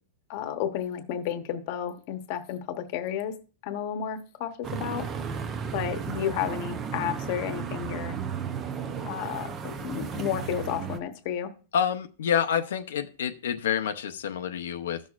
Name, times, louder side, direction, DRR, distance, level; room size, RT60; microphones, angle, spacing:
voice 1, 0.3-3.3 3.6-5.1 5.7-8.2 9.1-11.5, left 9 dB, 35° left, 1.0 m, -32 dB
sound 1, 4.6-11.0, right 6 dB, 15° right, 0.6 m, -34 dB
voice 2, 11.7-15.0, left 8 dB, 80° left, 0.6 m, -28 dB
14.5 x 6.2 x 2.4 m
supercardioid pair, 170°, 0 cm